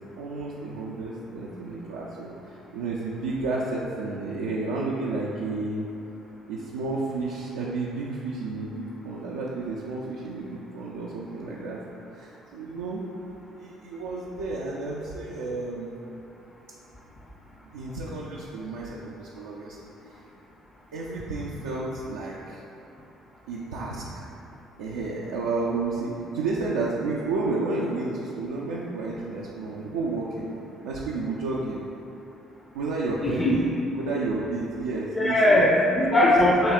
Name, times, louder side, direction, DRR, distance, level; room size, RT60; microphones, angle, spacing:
voice 1, 0.2-5.9 6.5-11.8 12.1-13.0 13.5-16.0 17.7-19.9 20.9-22.6 23.5-24.0 24.8-30.5 30.8-31.8 32.7-33.7 34.0-35.7 36.2-36.3, right 3 dB, 85° right, -5 dB, 0.3 m, -31 dB
voice 2, 33.2-33.6 35.2-36.7, left 1 dB, 30° left, -2 dB, 0.5 m, -20 dB
7.3 x 2.7 x 2.4 m, 2.8 s
hypercardioid pair, 60°, 0 cm